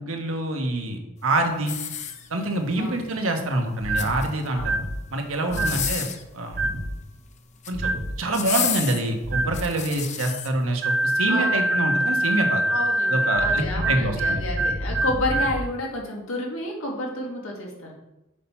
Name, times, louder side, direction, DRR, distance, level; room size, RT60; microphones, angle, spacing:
voice 1, 0.0-1.8 2.3-4.7 5.1-6.1 6.3-6.6 7.7-7.9 8.2-12.7 13.1-14.4, right 2 dB, 85° right, 4 dB, 1.2 m, -26 dB
sound 1, 1.6-2.6 3.7-4.5 5.4-6.3 7.4-7.8 8.3-10.5 11.1-11.2, left 9 dB, 35° left, 0.5 m, -31 dB
sound 2, 3.8-4.2 4.6-4.9 5.5-5.9 6.5-6.9 7.7-8.1 9.2-9.6 10.8-15.6, right 1 dB, 50° right, 1.4 m, -24 dB
voice 2, 5.5-5.8 11.3-11.9 12.7-18.0, left 1 dB, 90° left, 0 dB, 1.8 m, -30 dB
6.5 x 5.6 x 4.3 m, 0.95 s
head